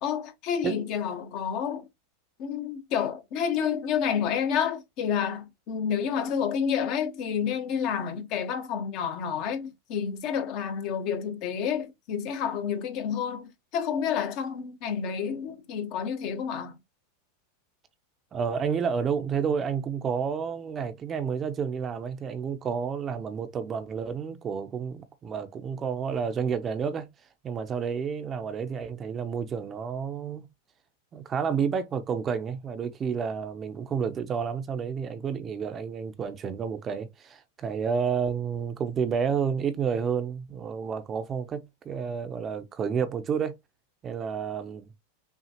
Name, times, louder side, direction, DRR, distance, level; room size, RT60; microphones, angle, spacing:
voice 1, 0.0-1.9 2.4-16.7, left 7 dB, 50° left, 1.0 m, -29 dB
voice 2, 18.3-27.1 27.4-30.5 31.1-43.6 44.0-44.9, right 6 dB, 30° right, 0.6 m, -30 dB
5.7 x 2.3 x 2.9 m
hypercardioid pair, 115°, 0 cm